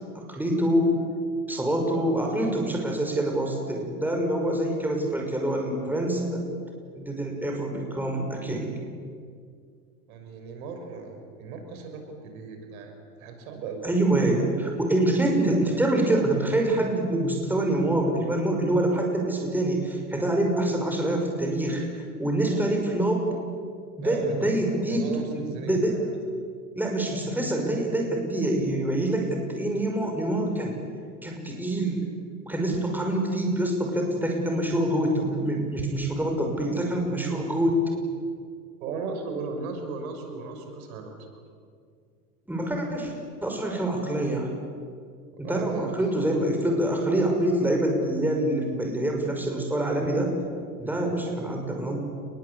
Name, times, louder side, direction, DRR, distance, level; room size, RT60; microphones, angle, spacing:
voice 1, 0.1-1.0 1.5-6.5 7.0-8.7 13.8-21.8 22.2-23.3 24.0-25.1 25.3-26.0 26.8-30.8 31.2-32.1 32.5-37.8 42.5-43.1 43.4-44.5 45.4-50.3 50.8-52.0, right 1 dB, 5° right, 1 dB, 5.9 m, -25 dB
voice 2, 10.1-13.9 24.0-24.5 24.8-26.0 38.8-41.1 45.4-46.0 50.8-51.0, right 4 dB, 65° right, 5 dB, 6.3 m, -36 dB
30.0 x 21.5 x 8.5 m, 2.2 s
hypercardioid pair, 105°, 46 cm